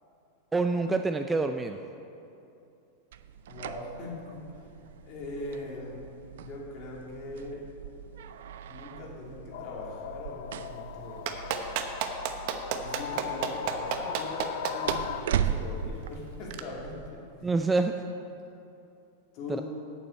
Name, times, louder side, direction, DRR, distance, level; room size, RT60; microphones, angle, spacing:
voice 1, 0.5-1.8 17.4-17.9 19.5-19.6, right 3 dB, 10° right, 7 dB, 0.3 m, -26 dB
sound 1, 3.1-17.1, right 8 dB, 80° right, 0.4 m, -38 dB
voice 2, 3.5-4.4 5.1-6.0 6.3-7.6 8.7-11.3 12.8-17.3 19.3-19.6, left 2 dB, 40° left, -3 dB, 2.7 m, -41 dB
sound 2, 9.5-15.2, left 10 dB, 65° left, 0.5 m, -39 dB
Clapping, 11.3-15.0 16.5-16.6, right 9 dB, 50° right, 0.9 m, -30 dB
8.6 x 7.1 x 8.5 m, 2.7 s
supercardioid pair, 155°, 0 cm